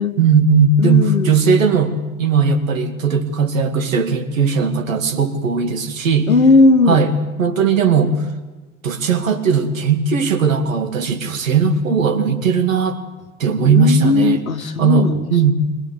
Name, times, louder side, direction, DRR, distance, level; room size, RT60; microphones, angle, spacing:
voice 1, 0.2-6.3 6.9-7.1 7.4-8.2 8.8-13.0 13.4-14.4 14.8-15.5, right 5 dB, 70° right, 7 dB, 2.4 m, -17 dB
voice 2, 0.8-1.4 6.3-7.1 13.6-15.5, left 3 dB, 80° left, 10 dB, 1.5 m, -16 dB
23.5 x 18.0 x 8.4 m, 1.2 s
figure-of-eight pair, 80°, 41 cm